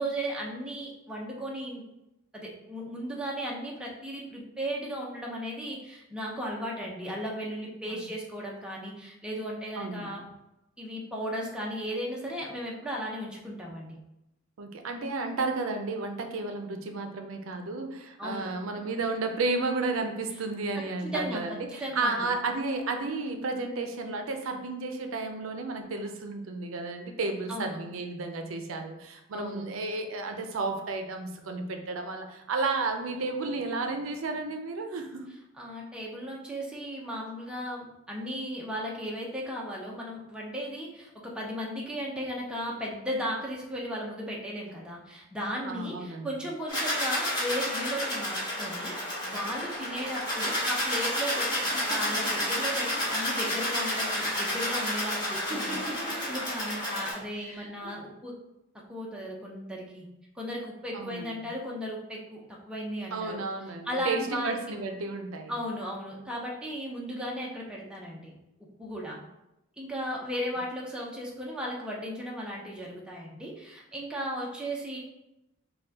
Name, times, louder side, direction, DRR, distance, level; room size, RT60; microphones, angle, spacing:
voice 1, 0.0-1.8 2.3-10.3 10.8-14.0 18.2-18.5 21.0-22.3 27.5-27.8 29.3-29.7 35.6-58.3 58.9-60.1 60.3-63.4 63.8-64.5 65.5-68.3 68.8-69.2 69.8-75.0, equal, 5° right, -3 dB, 0.6 m, -36 dB
voice 2, 9.8-10.1 14.6-35.2 45.7-46.3 60.9-61.3 63.1-65.5, right 3 dB, 85° right, 5 dB, 0.5 m, -32 dB
sound 1, 46.7-57.1, left 1 dB, 20° left, 1.4 m, -30 dB
sound 2, 49.4-53.0 53.3-54.0 55.1-56.3 57.3-57.9, right 1 dB, 40° right, 1.2 m, -42 dB
5.3 x 2.3 x 2.8 m, 0.91 s
head